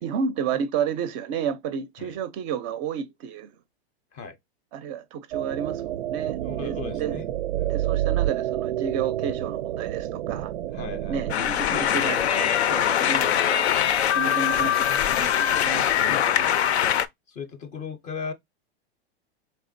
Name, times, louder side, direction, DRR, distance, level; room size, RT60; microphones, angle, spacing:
voice 1, 0.0-3.5 4.7-7.2 7.7-10.5 11.1-13.7 14.0-16.2, right 7 dB, 30° right, 0.4 m, -31 dB
sound 1, 5.3-11.3, right 13 dB, 90° right, 0.5 m, -28 dB
voice 2, 6.4-7.3 10.7-11.3 13.2-13.4 14.2-15.0 16.0-16.7 17.3-18.3, left 6 dB, 25° left, 0.5 m, -38 dB
sound 2, 11.3-17.1, left 10 dB, 90° left, 0.6 m, -22 dB
4.3 x 3.4 x 2.5 m
hypercardioid pair, 140°, 32 cm